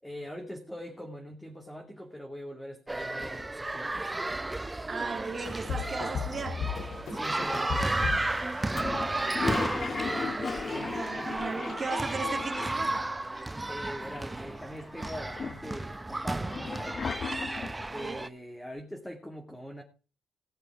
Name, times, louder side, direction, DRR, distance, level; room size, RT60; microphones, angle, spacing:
voice 1, 0.0-4.0 7.1-8.0 10.5-10.9 13.7-16.6 17.9-19.8, equal, 5° left, 2.5 m, -42 dB
sound 1, 2.9-18.3, right 2 dB, 15° right, 0.7 m, -33 dB
voice 2, 4.9-6.7 9.3-13.1 17.9-18.3, right 4 dB, 35° right, 2.8 m, -37 dB
sound 2, 5.7-9.3, left 7 dB, 70° left, 2.5 m, -36 dB
Toilet flush, 8.7-13.1 13.4-13.5 13.7-14.5 15.0-17.8, left 5 dB, 40° left, 1.1 m, -36 dB
18.5 x 6.7 x 4.7 m
cardioid pair, 95°, 0 cm